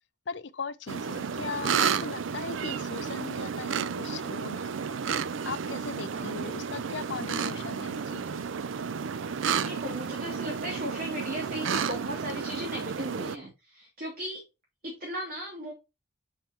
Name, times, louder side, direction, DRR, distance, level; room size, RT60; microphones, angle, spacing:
voice 1, 0.3-4.7 5.5-8.5, left 5 dB, 70° left, 0.6 m, -39 dB
sound 1, 0.9-13.4, right 6 dB, 85° right, 0.5 m, -32 dB
voice 2, 1.2-1.6 6.1-6.8 9.4-14.5 14.8-15.7, equal, 50° right, 2.9 m, -37 dB
7.1 x 5.8 x 3.0 m
head